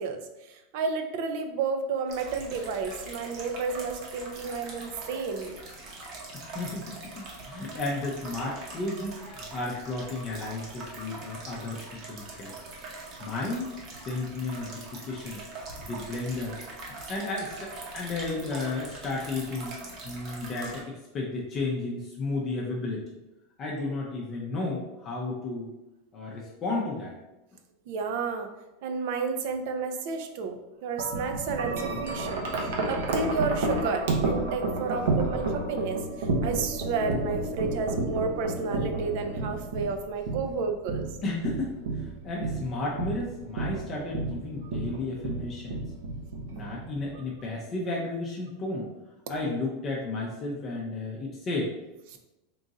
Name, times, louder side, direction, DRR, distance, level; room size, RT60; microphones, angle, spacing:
voice 1, 0.0-5.6 27.9-28.5 28.8-41.1 52.1-52.2, right 5 dB, 55° right, 6 dB, 0.5 m, -31 dB
sound 1, 2.1-20.8, right 2 dB, 35° right, 0.9 m, -43 dB
voice 2, 6.5-12.5 13.2-13.8 14.0-15.4 15.9-16.6 16.9-19.8 20.0-23.0 23.6-25.7 26.1-27.1 41.2-45.8 46.5-48.9 49.3-51.7, left 2 dB, 25° left, -3 dB, 0.6 m, -33 dB
Wind chime, 31.0-47.2, right 2 dB, 85° right, 0.9 m, -31 dB
3.8 x 2.5 x 4.0 m, 1.0 s
supercardioid pair, 165°, 0 cm